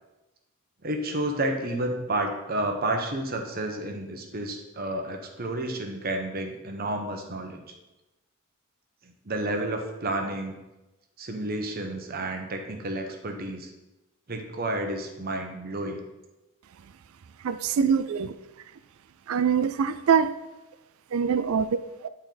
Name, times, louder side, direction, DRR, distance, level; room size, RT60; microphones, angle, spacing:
voice 1, 0.8-7.6 9.2-10.6 11.2-13.7 14.3-16.0, right 1 dB, 45° right, 4 dB, 1.0 m, -30 dB
voice 2, 17.4-18.4 19.3-20.3 21.1-22.1, right 6 dB, 80° right, 12 dB, 0.4 m, -24 dB
10.5 x 4.4 x 3.9 m, 1.0 s
head